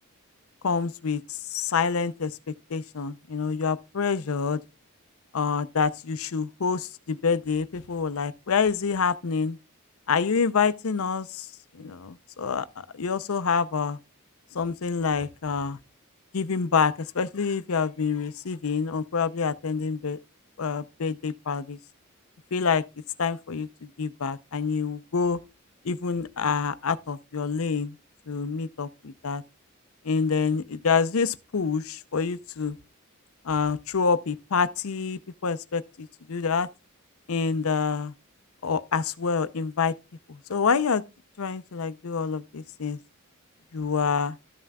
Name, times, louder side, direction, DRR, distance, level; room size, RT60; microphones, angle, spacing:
voice 1, 0.6-2.4 2.7-4.6 5.3-9.6 10.1-11.5 11.7-14.0 14.5-15.8 16.3-20.2 20.6-21.8 22.5-22.8 23.2-25.4 25.8-27.9 28.3-29.4 30.0-32.8 33.4-36.7 37.3-38.1 38.6-39.9 40.3-41.0 41.4-43.0 43.7-44.4, left 5 dB, 70° left, 0.6 m, -27 dB
13.5 x 7.4 x 2.3 m
head